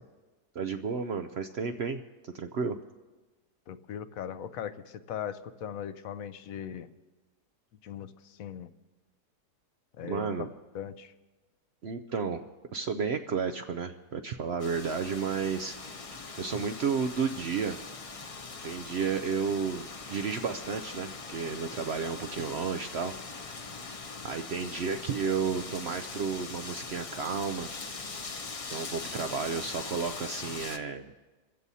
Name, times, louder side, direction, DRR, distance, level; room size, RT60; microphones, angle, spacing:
voice 1, 0.5-2.8 10.0-10.5 11.8-12.4 12.7-15.8 16.4-17.8 18.6-23.1 24.2-27.7 28.7-31.1, right 5 dB, 65° right, 6 dB, 0.6 m, -32 dB
voice 2, 3.7-6.9 7.8-8.7 10.0-10.3 10.7-11.1, left 9 dB, 65° left, 12 dB, 1.0 m, -39 dB
Wind, 14.6-30.8, left 4 dB, 50° left, 0.4 m, -41 dB
28.0 x 15.5 x 2.8 m, 1.2 s
omnidirectional pair, 1.7 m